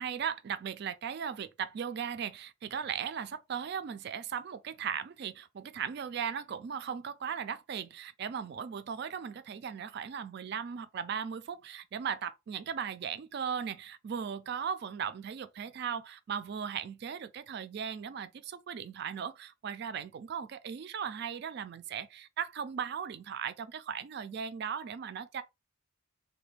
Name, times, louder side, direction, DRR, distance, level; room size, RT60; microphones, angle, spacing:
voice 1, 0.0-25.4, right 7 dB, 50° right, 0.3 m, -37 dB
3.2 x 2.2 x 3.3 m
head